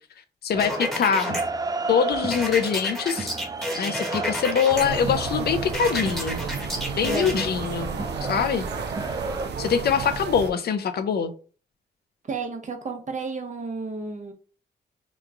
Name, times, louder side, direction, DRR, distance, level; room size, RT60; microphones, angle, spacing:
voice 1, 0.4-1.4 1.9-3.3 3.8-6.4 6.9-7.9 8.2-8.7 9.6-11.3, left 7 dB, 70° left, 0.5 m, -23 dB
sound 1, 0.5-9.5, right 3 dB, 20° right, 0.4 m, -33 dB
sound 2, 0.6-1.4 2.3-4.8 5.7-7.5, equal, ahead, 1.1 m, -31 dB
sound 3, 4.7-10.5, right 5 dB, 85° right, 0.5 m, -32 dB
voice 2, 7.1-7.4 12.3-14.3, right 4 dB, 45° right, 0.8 m, -32 dB
3.0 x 2.2 x 3.7 m
cardioid pair, 70°, 17 cm